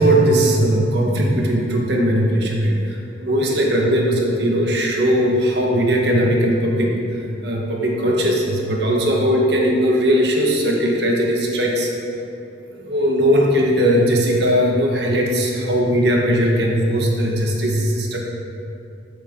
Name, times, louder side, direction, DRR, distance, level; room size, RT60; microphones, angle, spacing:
voice 1, 0.0-11.9 12.7-18.2, equal, 60° right, -2 dB, 1.6 m, -19 dB
15.0 x 8.5 x 3.9 m, 2.7 s
head